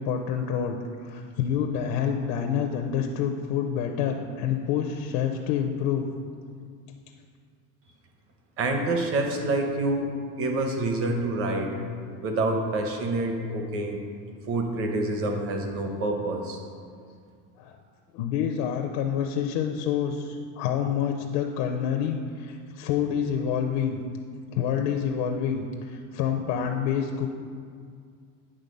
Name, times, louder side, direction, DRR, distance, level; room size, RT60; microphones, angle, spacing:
voice 1, 0.0-6.1 17.6-17.8 18.1-24.0 24.5-27.3, left 8 dB, 65° left, 3 dB, 0.6 m, -27 dB
voice 2, 8.6-10.1 10.4-11.7 12.2-14.0 14.5-16.6, right 2 dB, 35° right, 3 dB, 0.9 m, -27 dB
9.9 x 3.8 x 5.3 m, 2.2 s
cardioid pair, 165°, 38 cm